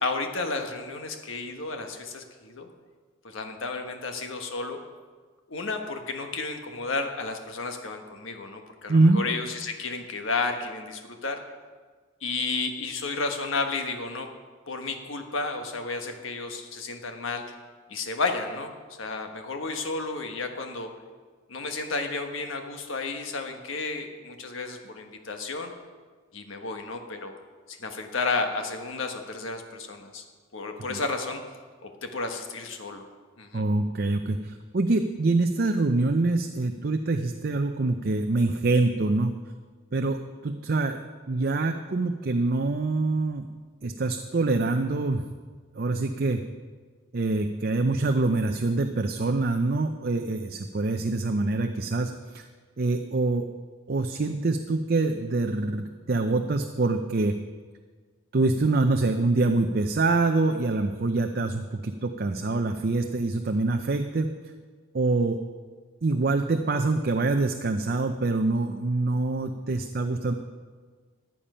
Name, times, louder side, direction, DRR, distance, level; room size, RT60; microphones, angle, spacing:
voice 1, 0.0-2.7 3.2-4.8 5.5-11.4 12.2-14.3 14.7-17.5 17.9-18.7 19.0-20.9 21.5-25.7 26.3-27.3 27.7-30.2 30.5-31.4 31.8-33.1 33.4-33.6, left 3 dB, 70° left, 5 dB, 1.3 m, -32 dB
voice 2, 8.9-9.2 30.9-31.0 33.5-39.3 39.9-41.0 41.3-43.5 43.8-45.3 45.8-46.4 47.1-52.5 52.8-53.4 53.9-57.4 58.3-64.3 64.9-65.4 66.0-70.3, right 2 dB, 45° right, 6 dB, 0.5 m, -25 dB
14.0 x 8.8 x 5.6 m, 1.5 s
head